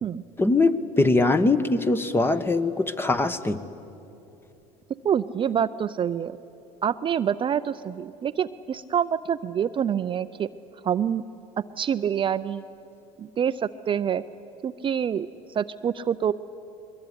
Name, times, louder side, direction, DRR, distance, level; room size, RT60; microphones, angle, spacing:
voice 1, 0.4-3.6, left 2 dB, 15° left, 12 dB, 1.1 m, -22 dB
voice 2, 5.0-6.4 6.8-10.5 10.8-11.2 11.8-12.6 13.2-14.2 14.6-16.3, right 8 dB, 30° right, 12 dB, 0.5 m, -26 dB
21.5 x 21.0 x 9.7 m, 2.9 s
supercardioid pair, 105°, 16 cm